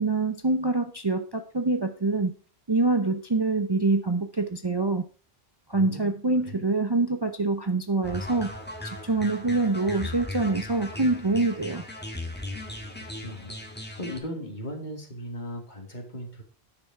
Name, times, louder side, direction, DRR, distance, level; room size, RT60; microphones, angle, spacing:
voice 1, 0.0-2.3 2.7-5.0 5.7-8.5 8.8-11.8, right 3 dB, 25° right, 7 dB, 0.7 m, -25 dB
voice 2, 5.7-6.2 6.4-6.6 13.2-16.4, equal, 45° left, 3 dB, 2.5 m, -38 dB
sound 1, 8.0-14.2, left 1 dB, 10° left, 1.8 m, -37 dB
9.7 x 6.8 x 4.6 m, 0.39 s
omnidirectional pair, 1.1 m